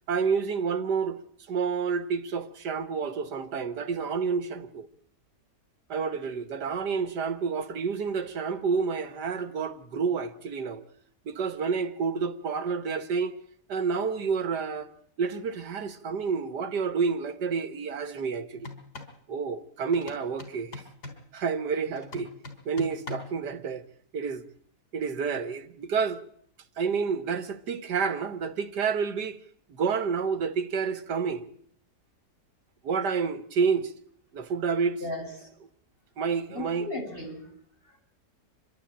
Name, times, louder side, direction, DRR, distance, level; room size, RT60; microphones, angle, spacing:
voice 1, 0.1-1.2 1.5-4.9 5.9-10.8 11.3-13.3 13.7-14.9 15.2-18.7 19.3-20.8 21.3-22.3 22.7-23.8 24.1-24.4 24.9-26.2 26.8-29.4 29.7-31.5 32.8-33.9 34.3-35.0 36.2-36.9, right 5 dB, 90° right, 1.9 m, -29 dB
sound 1, 18.6-19.2 19.9-21.3 22.0-23.4, left 3 dB, 75° left, 4.6 m, -42 dB
voice 2, 35.0-35.5 36.5-37.5 37.8-38.0, left 1 dB, 35° left, 7.6 m, -36 dB
28.5 x 12.0 x 8.7 m
omnidirectional pair, 1.7 m